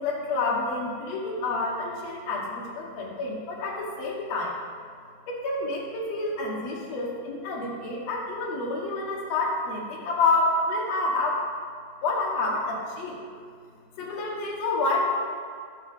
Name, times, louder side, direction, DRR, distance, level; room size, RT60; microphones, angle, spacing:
voice 1, 0.0-4.6 5.3-11.4 12.0-13.2 14.0-15.1, left 2 dB, 65° left, -3 dB, 1.7 m, -28 dB
16.0 x 6.7 x 3.6 m, 2.2 s
omnidirectional pair, 4.5 m